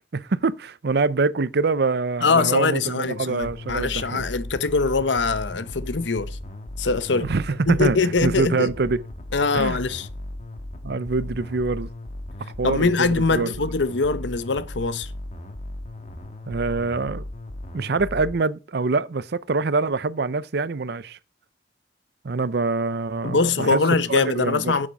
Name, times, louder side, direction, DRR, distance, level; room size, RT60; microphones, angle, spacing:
voice 1, 0.1-4.3 7.1-9.0 9.5-9.8 10.8-11.9 12.6-13.5 16.5-17.2 17.7-21.2 22.2-23.8 24.1-24.9, right 3 dB, 60° right, 0.6 m, -25 dB
voice 2, 2.2-6.4 6.8-7.3 7.7-8.7 9.3-10.1 12.6-15.1 23.2-24.9, left 4 dB, 75° left, 0.9 m, -23 dB
sound 1, 3.4-18.4, left 1 dB, 40° left, 1.8 m, -36 dB
10.0 x 7.5 x 5.3 m
head